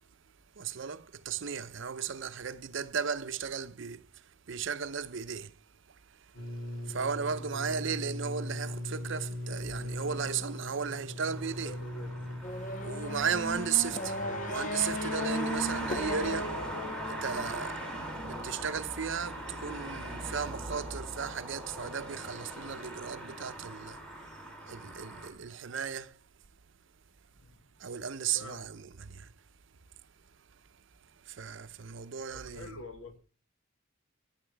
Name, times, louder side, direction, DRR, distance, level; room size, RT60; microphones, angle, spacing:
voice 1, 0.6-5.5 6.1-6.3 6.8-11.8 12.8-14.2 14.5-16.6 17.0-17.8 18.2-24.0 24.7-26.2 27.8-29.3 31.3-32.8, right 7 dB, 65° right, 0.6 m, -35 dB
sound 1, 6.3-15.0, left 1 dB, 70° left, 3.4 m, -40 dB
sound 2, 11.3-25.3, right 1 dB, 5° left, 3.3 m, -41 dB
voice 2, 11.6-12.3 14.2-14.4 27.4-27.6 28.3-28.7 32.3-33.2, left 1 dB, 90° left, 1.7 m, -47 dB
Race car auto racing / Accelerating revving vroom, 12.4-17.6, left 1 dB, 40° left, 0.6 m, -36 dB
15.0 x 9.9 x 3.4 m
head